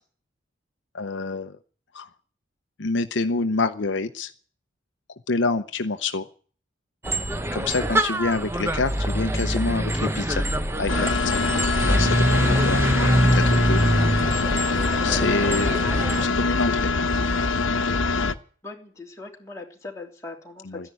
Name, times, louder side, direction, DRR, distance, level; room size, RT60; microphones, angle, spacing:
voice 1, 0.9-1.6 1.9-2.1 2.8-4.3 5.3-6.3 7.5-10.5 10.8-11.4 11.9-13.8 15.0-15.8 16.2-16.9 20.7-20.9, left 3 dB, 65° left, 9 dB, 0.8 m, -27 dB
sound 1, 7.0-16.3, right 1 dB, 10° right, 0.8 m, -24 dB
sound 2, 10.9-18.3, left 3 dB, 85° left, 1.1 m, -24 dB
voice 2, 18.6-20.9, left 3 dB, 15° left, -1 dB, 3.1 m, -40 dB
14.0 x 10.5 x 9.6 m, 0.43 s
head